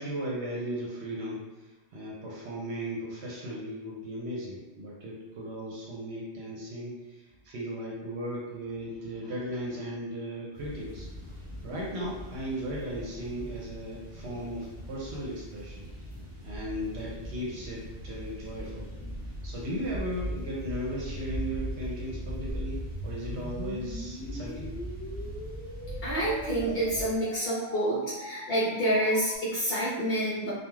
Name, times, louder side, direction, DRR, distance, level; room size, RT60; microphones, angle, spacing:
voice 1, 0.0-11.1 11.6-15.9 16.4-18.9 19.4-24.7, equal, 70° right, -3 dB, 0.8 m, -36 dB
sound 1, 10.5-27.2, equal, 30° right, 0.7 m, -40 dB
sound 2, 22.5-29.4, equal, 30° left, 0.3 m, -41 dB
voice 2, 26.0-30.5, right 1 dB, 60° left, -7 dB, 0.8 m, -28 dB
2.3 x 2.2 x 3.0 m, 1.1 s
omnidirectional pair, 1.2 m